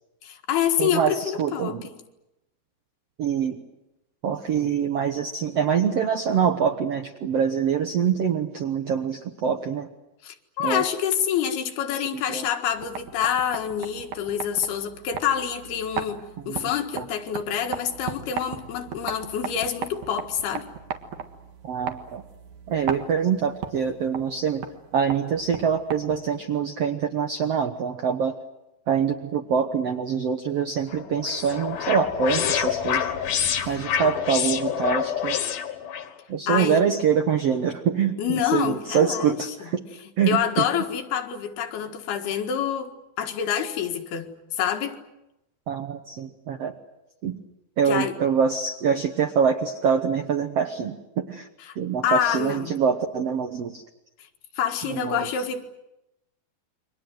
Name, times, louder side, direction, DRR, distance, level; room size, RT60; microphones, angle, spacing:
voice 1, 0.2-2.0 10.2-20.7 33.6-33.8 36.5-36.8 38.2-39.7 40.3-45.0 47.9-48.1 51.6-51.8 52.0-52.7 54.6-55.6, left 9 dB, 80° left, 5 dB, 3.7 m, -27 dB
voice 2, 0.8-1.8 3.2-3.6 4.2-9.9 10.6-10.8 12.1-12.5 16.5-16.6 16.9-17.0 21.6-22.2 22.7-24.6 24.9-28.3 28.9-33.1 33.7-35.4 36.3-39.8 40.2-40.7 45.7-46.7 47.2-47.4 47.8-51.5 51.8-53.8 54.9-55.3, right 7 dB, 70° right, 7 dB, 1.4 m, -25 dB
sound 1, 12.7-26.4, right 7 dB, 55° right, 2.6 m, -37 dB
sound 2, 30.9-36.1, left 8 dB, 60° left, 3.0 m, -27 dB
29.0 x 23.5 x 7.8 m, 0.93 s
omnidirectional pair, 4.5 m